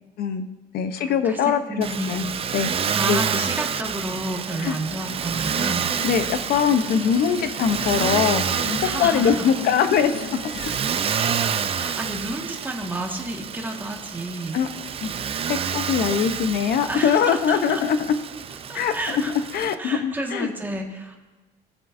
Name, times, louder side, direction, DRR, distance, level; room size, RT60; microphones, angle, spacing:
voice 1, 0.2-0.5 0.7-2.3 2.5-3.2 4.6-4.8 6.0-8.6 9.0-10.3 14.5-14.7 15.0-15.1 15.5-18.1 18.7-18.9 19.5-20.5, left 7 dB, 65° left, 10 dB, 0.9 m, -22 dB
voice 2, 1.0-2.3 2.9-5.8 8.8-9.5 11.7-14.6 16.9-17.8 18.7-19.3 19.8-21.2, right 1 dB, 10° right, 0 dB, 1.7 m, -31 dB
Motor vehicle (road), 1.8-19.8, right 7 dB, 35° right, 0.5 m, -28 dB
sound 1, 4.1-12.1, left 10 dB, 85° left, 0.6 m, -38 dB
19.5 x 7.5 x 2.7 m, 1.2 s
cardioid pair, 110°, 17 cm